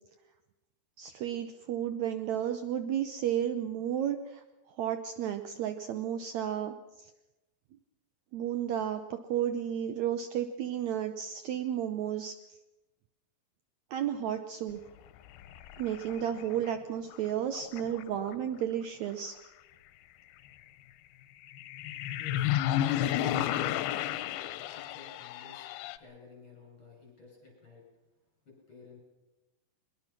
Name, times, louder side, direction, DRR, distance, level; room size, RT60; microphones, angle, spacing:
voice 1, 1.0-4.4 4.8-7.1 8.3-12.3 13.9-14.8 15.8-19.4, right 10 dB, 85° right, 9 dB, 1.6 m, -33 dB
sound 1, 15.4-17.2 17.5-18.4 21.4-26.0, left 12 dB, 85° left, 2.7 m, -32 dB
voice 2, 22.1-22.5 24.7-25.7 25.9-27.8 28.4-29.0, left 4 dB, 35° left, 0 dB, 8.4 m, -52 dB
22.5 x 21.0 x 6.0 m, 1.0 s
omnidirectional pair, 4.4 m